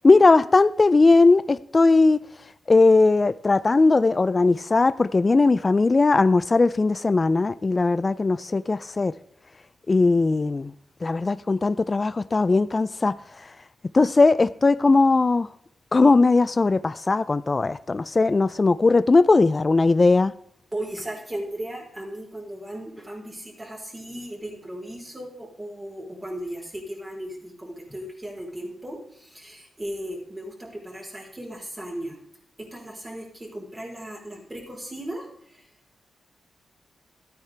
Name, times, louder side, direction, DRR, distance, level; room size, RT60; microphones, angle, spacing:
voice 1, 0.0-2.2 2.7-9.1 9.9-10.7 11.0-13.2 13.9-15.5 15.9-20.3, left 3 dB, 30° left, 0.3 m, -19 dB
voice 2, 20.7-32.2 32.6-35.7, right 1 dB, 20° right, 4.1 m, -36 dB
13.0 x 9.4 x 3.4 m
cardioid pair, 80°, 0 cm